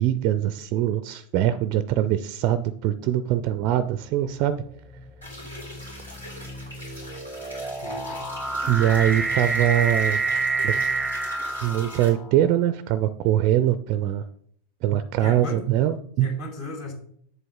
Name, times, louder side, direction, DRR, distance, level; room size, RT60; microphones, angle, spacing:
voice 1, 0.0-4.6 8.7-10.2 10.6-10.8 11.6-14.3 14.8-16.3, right 12 dB, 40° right, 14 dB, 0.4 m, -23 dB
sound 1, 3.0-3.4 4.2-12.5, right 3 dB, ahead, 0.8 m, -29 dB
sound 2, 5.2-12.1, left 1 dB, 80° left, 3.9 m, -42 dB
voice 2, 7.8-8.3 15.2-15.6 16.2-16.9, left 2 dB, 50° left, 1 dB, 3.0 m, -35 dB
7.9 x 7.6 x 3.7 m, 0.63 s
figure-of-eight pair, 90°, 0 cm